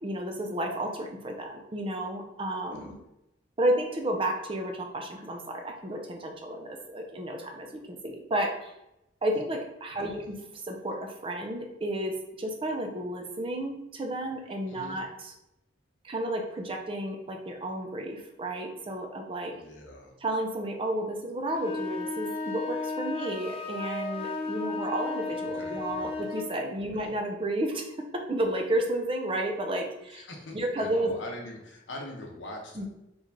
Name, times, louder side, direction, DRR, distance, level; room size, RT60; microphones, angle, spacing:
voice 1, 0.0-2.9 3.6-8.7 9.2-10.3 10.7-15.3 16.0-19.5 20.2-30.3 30.5-31.1 32.7-32.8, right 1 dB, 30° right, 2 dB, 0.5 m, -32 dB
voice 2, 9.9-10.3 14.7-15.0 19.5-20.1 25.3-26.2 26.8-27.1 30.1-32.8, left 1 dB, 85° left, 1 dB, 0.9 m, -43 dB
sound 1, 21.6-26.5, left 3 dB, 30° left, 0.4 m, -34 dB
4.5 x 3.0 x 2.7 m, 0.88 s
head